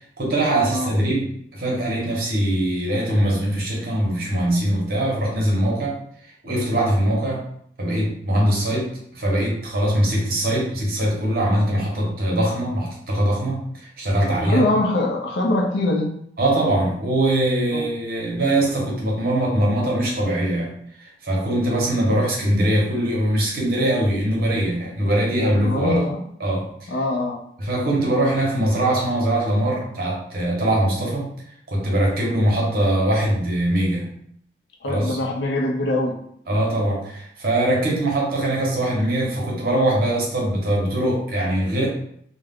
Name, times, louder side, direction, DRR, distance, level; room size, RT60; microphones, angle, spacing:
voice 1, 0.2-7.5 7.8-14.6 16.4-20.7 21.0-26.0 26.4-26.7 27.6-31.3 31.7-34.1 34.8-35.2 36.5-41.9, right 1 dB, 55° right, -2 dB, 0.8 m, -22 dB
voice 2, 14.3-16.1 17.7-17.8 25.6-26.2 26.9-27.4 34.8-36.2, left 1 dB, 80° left, 2 dB, 0.5 m, -23 dB
2.3 x 2.1 x 3.4 m, 0.67 s
head